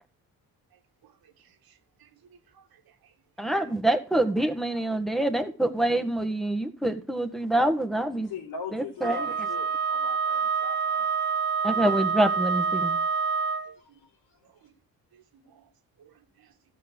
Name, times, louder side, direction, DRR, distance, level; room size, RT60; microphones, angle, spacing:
voice 1, 0.7-3.5 13.6-14.0 14.4-14.7 15.1-15.7 16.0-16.5, right 8 dB, 70° right, 1.7 m, -61 dB
voice 2, 3.4-8.3 8.7-9.3 11.6-13.0, right 1 dB, ahead, 1.6 m, -26 dB
voice 3, 8.3-11.4 13.7-14.1, left 4 dB, 75° left, 3.4 m, -40 dB
Wind instrument woodwind instrument, 9.0-13.7, right 5 dB, 30° right, 1.8 m, -27 dB
13.5 x 5.6 x 6.2 m
cardioid pair, 70°, 37 cm